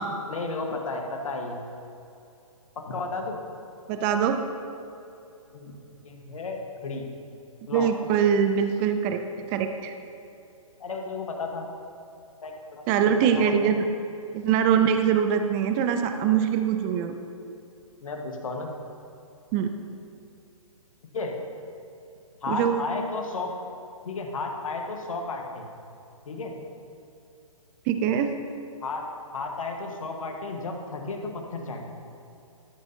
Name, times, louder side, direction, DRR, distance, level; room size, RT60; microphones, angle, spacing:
voice 1, 0.3-1.6 2.7-3.4 5.5-5.7 6.0-7.1 7.7-7.9 10.8-11.7 12.4-12.8 13.4-13.5 18.0-18.7 21.1-21.4 22.4-23.5 24.0-25.7 26.2-26.5 28.8-29.0 29.3-31.8, left 3 dB, 70° left, 2 dB, 1.3 m, -33 dB
voice 2, 3.9-4.4 7.7-9.2 9.5-9.9 12.9-13.9 14.3-17.1 19.5-19.7 22.5-22.8 27.9-28.3, right 8 dB, 15° right, 7 dB, 0.3 m, -23 dB
13.5 x 7.8 x 2.8 m, 2.8 s
hypercardioid pair, 140°, 18 cm